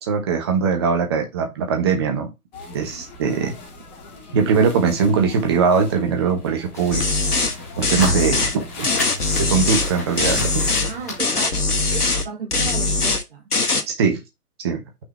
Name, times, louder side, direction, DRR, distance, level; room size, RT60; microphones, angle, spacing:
voice 1, 0.1-2.3 2.7-3.5 4.3-7.0 7.8-8.9 9.5-10.7 13.9-14.2 14.6-14.8, right 5 dB, 15° right, 0.9 m, -21 dB
sound 1, 2.5-10.7, left 2 dB, 30° left, 1.8 m, -39 dB
sound 2, 6.7-12.0, left 2 dB, 10° left, 0.7 m, -35 dB
sound 3, 6.9-7.5 7.8-8.5 8.8-9.9 10.2-10.9 11.2-12.2 12.5-13.2 13.5-13.8, left 3 dB, 75° left, 1.5 m, -21 dB
voice 2, 10.9-11.6 11.9-13.5, right 6 dB, 35° right, 1.3 m, -34 dB
5.9 x 3.8 x 4.2 m
figure-of-eight pair, 135°, 46 cm